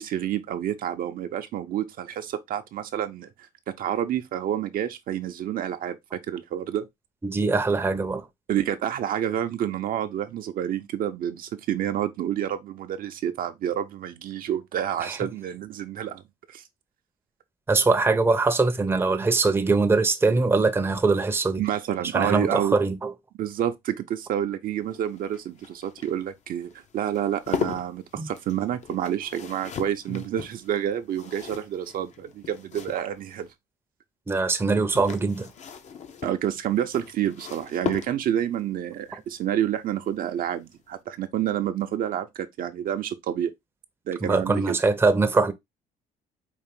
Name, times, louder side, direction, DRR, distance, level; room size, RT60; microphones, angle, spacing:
voice 1, 0.0-6.9 8.5-16.2 16.5-16.6 21.6-22.8 23.4-33.5 36.2-43.5 44.1-44.8, right 10 dB, 60° right, 0.6 m, -29 dB
voice 2, 7.2-8.3 15.0-15.3 17.7-21.6 22.1-23.1 28.2-28.3 30.1-30.2 34.3-35.5 44.2-45.5, right 3 dB, 15° right, 0.6 m, -22 dB
sound 1, 24.7-33.5 34.6-38.5 40.1-40.5 40.7-40.8, left 7 dB, 45° left, 0.7 m, -37 dB
4.8 x 2.5 x 3.6 m
cardioid pair, 110°, 17 cm